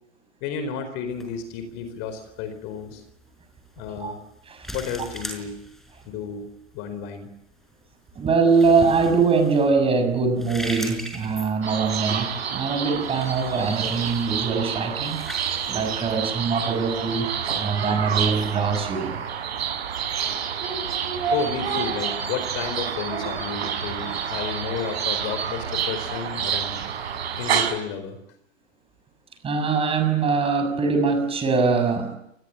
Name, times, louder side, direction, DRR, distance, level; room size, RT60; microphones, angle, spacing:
voice 1, 0.4-3.0 3.8-4.2 4.7-5.6 6.1-6.5 6.7-7.3 21.3-26.8 27.4-28.2, left 6 dB, 35° left, 9 dB, 4.5 m, -32 dB
sound 1, 1.1-17.3, equal, ahead, 5.5 m, -42 dB
voice 2, 8.1-15.2 15.6-19.2 29.4-32.2, right 4 dB, 15° right, 7 dB, 6.4 m, -23 dB
sound 2, 11.6-27.7, right 7 dB, 60° right, 6.2 m, -28 dB
29.0 x 20.5 x 8.7 m, 0.80 s
figure-of-eight pair, 120°, 36 cm